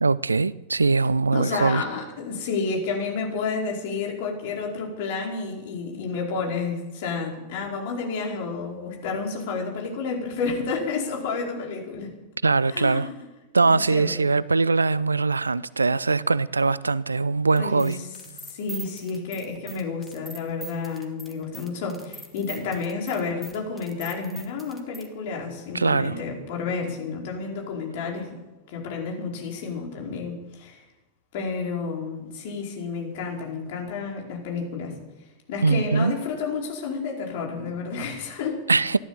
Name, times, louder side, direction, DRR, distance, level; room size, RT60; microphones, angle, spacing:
voice 1, 0.0-1.8 12.4-13.1 13.5-18.0 25.7-26.1 35.6-36.1 38.7-39.0, right 4 dB, 80° right, 0.4 m, -21 dB
voice 2, 1.3-12.1 12.7-13.1 13.6-14.2 17.5-17.9 18.5-28.3 28.7-30.8 31.3-34.9 35.5-38.6, left 4 dB, 50° left, 4.8 m, -30 dB
sound 1, 17.6-25.1, right 3 dB, 10° right, 2.5 m, -42 dB
16.0 x 12.0 x 7.5 m
figure-of-eight pair, 90°, 0 cm